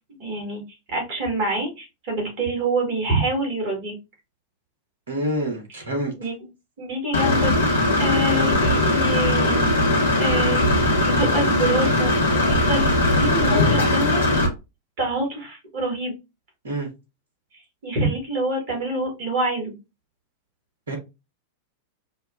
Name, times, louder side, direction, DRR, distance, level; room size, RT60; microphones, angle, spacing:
voice 1, 0.2-0.6 0.9-3.9 6.2-6.4 6.8-12.1 12.4-14.2 15.0-16.1 17.8-19.7, right 1 dB, 50° right, 1.9 m, -26 dB
voice 2, 5.1-6.1 16.6-16.9 20.9-21.0, right 1 dB, 65° right, 1.2 m, -27 dB
Engine / Mechanisms, 7.1-14.5, left 1 dB, 70° left, 0.9 m, -19 dB
5.2 x 2.3 x 2.5 m
figure-of-eight pair, 90°, 0 cm